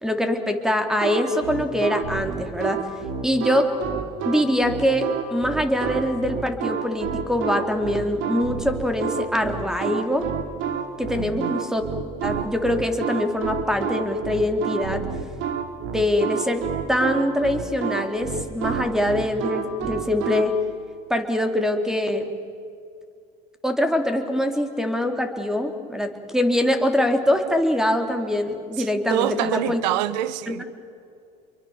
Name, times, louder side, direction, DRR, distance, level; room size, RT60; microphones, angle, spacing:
voice 1, 0.0-2.8 3.2-3.7 4.2-10.3 11.0-11.9 12.2-15.0 15.9-20.5 21.1-22.3 23.6-29.8 30.5-30.6, left 1 dB, ahead, 3.3 m, -23 dB
sound 1, 1.0-20.4, right 7 dB, 65° right, 2.9 m, -29 dB
voice 2, 11.1-11.6 28.8-30.6, right 13 dB, 85° right, 1.2 m, -26 dB
29.5 x 23.0 x 7.3 m
supercardioid pair, 90°, 21 cm